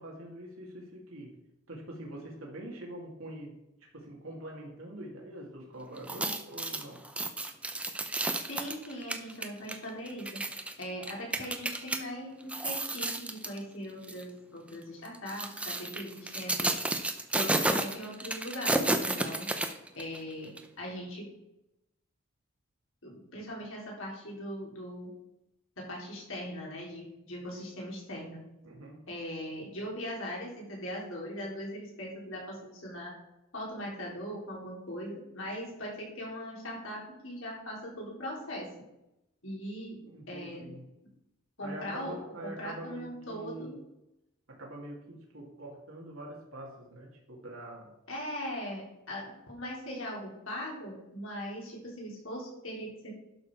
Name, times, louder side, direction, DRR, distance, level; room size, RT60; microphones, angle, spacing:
voice 1, 0.0-1.4 1.7-3.6 3.9-7.0 28.6-29.0 40.1-40.9 41.6-43.8 44.5-47.9, right 1 dB, 90° right, -2 dB, 2.2 m, -44 dB
sound 1, 6.0-12.0 12.4-13.6 14.0-14.2 15.0-20.2 20.6-20.7, right 2 dB, 5° right, 0.6 m, -32 dB
voice 2, 8.5-10.4 10.8-16.8 17.3-19.5 19.9-21.3 23.0-25.1 25.8-28.4 29.1-33.1 33.5-38.7 39.4-40.0 40.3-40.7 41.6-42.2 42.4-43.8 48.1-53.2, equal, 80° left, -3 dB, 3.9 m, -40 dB
11.5 x 6.4 x 4.8 m, 0.88 s
head